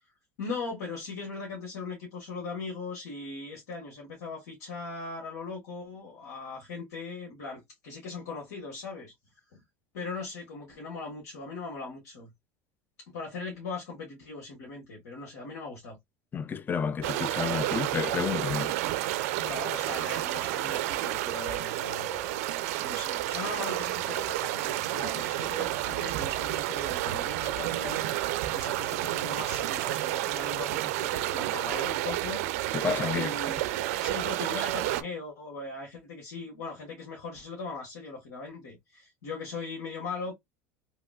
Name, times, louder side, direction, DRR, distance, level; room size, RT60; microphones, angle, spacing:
voice 1, 0.4-9.1 9.5-9.6 9.9-12.3 13.1-16.0 19.4-32.8 33.0-40.3, left 4 dB, 85° left, 1.5 m, -39 dB
voice 2, 16.3-18.8 32.7-33.3, left 6 dB, 25° left, 0.4 m, -30 dB
sound 1, 17.0-35.0, right 15 dB, 75° right, 0.4 m, -30 dB
3.0 x 2.8 x 2.3 m
supercardioid pair, 110°, 8 cm